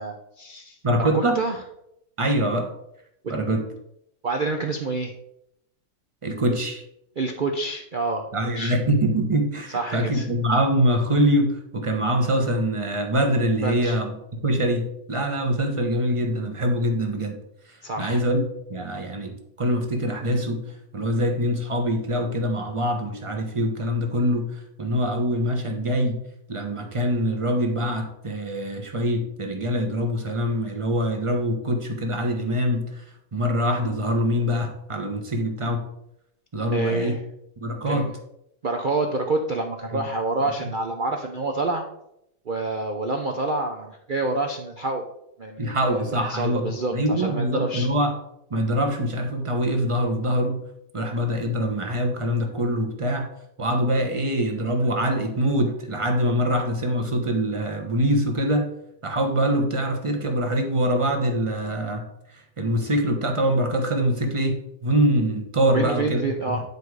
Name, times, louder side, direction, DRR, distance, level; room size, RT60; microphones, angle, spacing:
voice 1, 0.0-0.8 1.1-1.6 3.2-3.3 4.2-5.1 7.2-8.3 8.6-8.7 9.7-10.3 13.6-14.0 17.8-18.2 36.7-37.2 37.9-38.1 38.6-41.8 42.5-45.1 45.4-47.9 65.7-66.6, right 2 dB, 70° right, 4 dB, 0.4 m, -27 dB
voice 2, 0.8-1.4 2.2-2.7 3.3-3.7 6.2-6.8 8.3-14.1 14.4-17.4 17.7-18.4 18.7-20.6 20.9-26.2 26.5-33.0 33.3-35.8 36.5-37.2 37.6-38.1 39.9-40.1 45.6-48.1 48.5-50.6 50.9-53.3 53.6-58.7 59.0-62.0 62.6-66.6, equal, 20° right, 4 dB, 0.9 m, -24 dB
9.5 x 4.6 x 4.8 m, 0.78 s
omnidirectional pair, 1.9 m